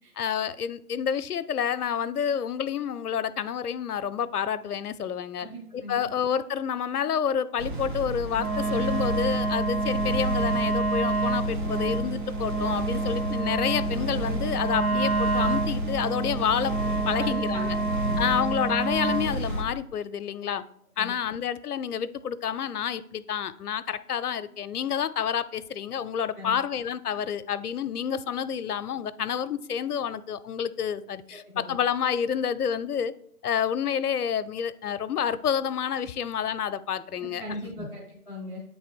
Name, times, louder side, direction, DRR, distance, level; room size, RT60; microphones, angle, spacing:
voice 1, 0.2-5.5 5.7-16.7 17.1-17.8 18.2-20.6 21.0-33.1 33.4-37.9, left 8 dB, 75° left, 14 dB, 0.6 m, -29 dB
voice 2, 5.4-6.0 17.2-18.4 20.5-20.6 21.0-21.1 26.4-26.6 31.3-31.8 37.4-38.6, equal, 5° right, -8 dB, 0.7 m, -39 dB
sound 1, 7.6-19.6, right 1 dB, 35° right, 0.9 m, -32 dB
Wind instrument woodwind instrument, 8.4-19.4, right 3 dB, 70° right, 0.8 m, -28 dB
8.7 x 3.3 x 4.3 m, 0.67 s
figure-of-eight pair, 140°, 46 cm